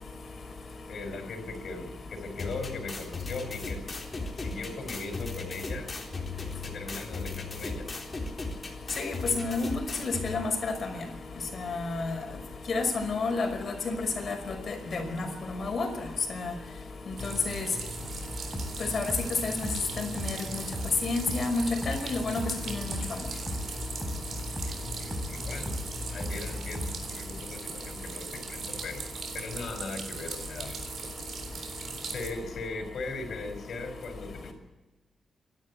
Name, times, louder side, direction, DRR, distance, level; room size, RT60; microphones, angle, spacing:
voice 1, 0.9-3.8 4.4-5.9 6.6-7.9 24.6-25.7 26.1-29.1 29.3-30.8 32.1-34.5, left 3 dB, 60° left, 6 dB, 4.9 m, -39 dB
sound 1, 2.4-10.4, left 3 dB, 25° left, 3.9 m, -37 dB
voice 2, 9.0-10.7 11.6-12.1 12.7-15.3 15.6-15.9 16.3-16.5 17.2-17.7 18.9-19.1 19.4-19.7 20.0-20.4 21.0-23.0, left 3 dB, 45° left, 4 dB, 5.3 m, -30 dB
sound 2, 17.2-27.1, left 1 dB, ahead, 5.6 m, -37 dB
sound 3, 17.2-32.3, right 5 dB, 55° right, 3.8 m, -40 dB
27.5 x 12.5 x 8.3 m, 1.1 s
wide cardioid pair, 150°, 0 cm